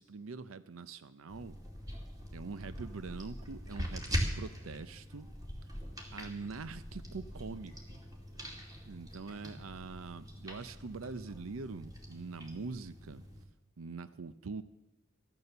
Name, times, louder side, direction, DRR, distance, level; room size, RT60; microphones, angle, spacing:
voice 1, 0.0-1.6 2.3-5.3 6.1-8.0 8.8-13.3 13.8-14.6, right 4 dB, 80° right, 13 dB, 0.6 m, -44 dB
sound 1, 1.3-13.4, equal, 20° right, 2.4 m, -42 dB
14.0 x 11.0 x 6.9 m, 0.92 s
head